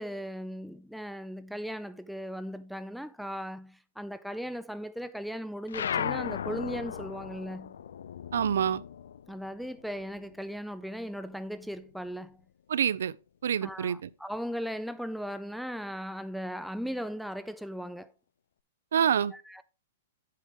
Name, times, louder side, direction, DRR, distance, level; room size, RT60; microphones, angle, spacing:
voice 1, 0.0-7.8 9.3-12.4 13.6-18.1 19.3-19.6, equal, ahead, 0.3 m, -37 dB
sound 1, 5.7-10.6 10.9-12.3, left 8 dB, 85° left, 0.3 m, -37 dB
voice 2, 8.3-8.8 12.7-13.1 13.4-14.1 18.9-19.3, right 8 dB, 80° right, 0.5 m, -26 dB
8.5 x 6.5 x 3.5 m
hypercardioid pair, 170°, 0 cm